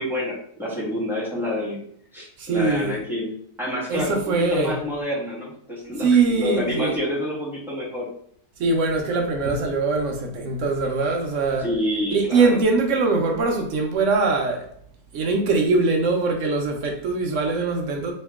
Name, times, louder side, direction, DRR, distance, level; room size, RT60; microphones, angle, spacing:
voice 1, 0.0-1.8 2.1-3.3 3.6-8.1 11.6-12.6, left 1 dB, ahead, 1.2 m, -28 dB
voice 2, 2.4-3.0 3.9-4.8 6.0-7.0 8.6-11.7 12.1-14.7 15.1-18.1, right 3 dB, 65° right, 0.8 m, -22 dB
3.1 x 2.8 x 3.4 m
omnidirectional pair, 1.7 m